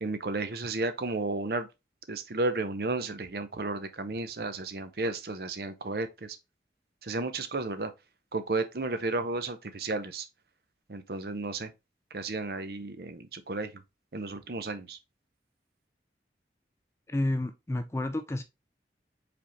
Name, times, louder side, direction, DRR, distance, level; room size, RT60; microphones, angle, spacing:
voice 1, 0.0-1.7 2.1-6.4 7.0-7.9 8.3-10.3 10.9-11.7 12.1-13.8 14.1-15.0, right 3 dB, 55° right, 0.6 m, -33 dB
voice 2, 17.1-18.4, left 1 dB, 15° left, 0.3 m, -30 dB
4.8 x 3.6 x 3.0 m
head